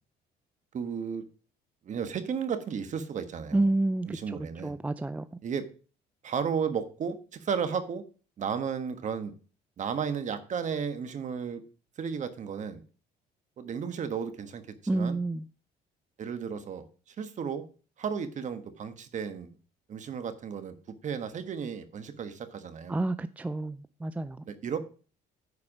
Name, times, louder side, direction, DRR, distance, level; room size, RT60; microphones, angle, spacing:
voice 1, 0.7-1.2 1.8-3.7 4.0-4.8 5.4-5.7 6.2-8.0 8.4-9.3 9.8-11.6 12.0-12.8 13.6-15.2 16.2-17.6 18.0-19.5 19.9-23.0 24.5-24.8, right 6 dB, 45° right, 1.4 m, -34 dB
voice 2, 3.5-4.2 4.6-5.2 14.9-15.4 22.9-24.4, right 2 dB, 10° right, 0.4 m, -29 dB
9.7 x 4.8 x 6.1 m
cardioid pair, 110°, 17 cm